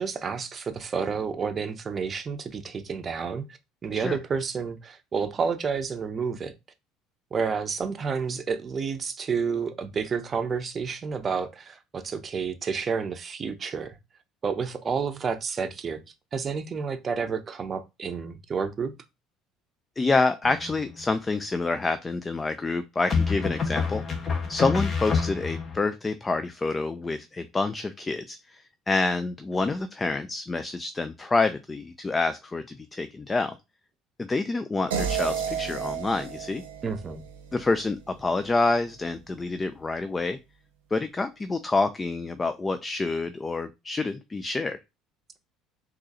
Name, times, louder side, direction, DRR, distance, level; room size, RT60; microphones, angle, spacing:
voice 1, 0.0-3.4 3.8-6.5 7.3-14.0 14.4-16.0 16.3-18.9 36.8-37.2, right 5 dB, 35° right, 0.6 m, -30 dB
voice 2, 20.0-24.0 24.5-33.6 34.2-36.6 37.5-40.4 40.9-44.8, left 3 dB, 25° left, 0.3 m, -27 dB
sound 1, 20.4-21.0 23.1-25.8, left 5 dB, 40° left, 0.9 m, -28 dB
sound 2, 34.9-38.0, right 7 dB, 80° right, 0.7 m, -32 dB
3.8 x 2.8 x 2.7 m
hypercardioid pair, 60°, 0 cm